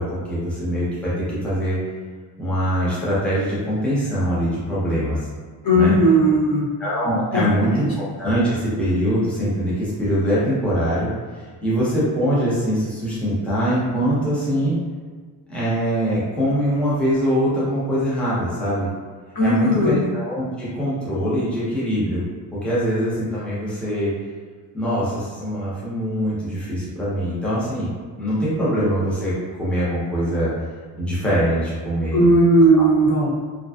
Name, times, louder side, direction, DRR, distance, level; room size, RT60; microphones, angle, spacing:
voice 1, 0.0-1.8 2.4-5.2 5.7-6.0 6.8-11.1 11.6-14.8 15.5-18.9 19.4-22.2 22.5-24.1 24.7-27.9 28.2-30.5 31.0-32.3 32.7-32.8, equal, 5° left, -9 dB, 0.7 m, -23 dB
voice 2, 5.6-6.7 7.3-7.9 19.3-20.1 32.1-33.3, right 1 dB, 55° left, -5 dB, 0.7 m, -17 dB
2.5 x 2.2 x 2.3 m, 1.6 s
cardioid pair, 125°, 43 cm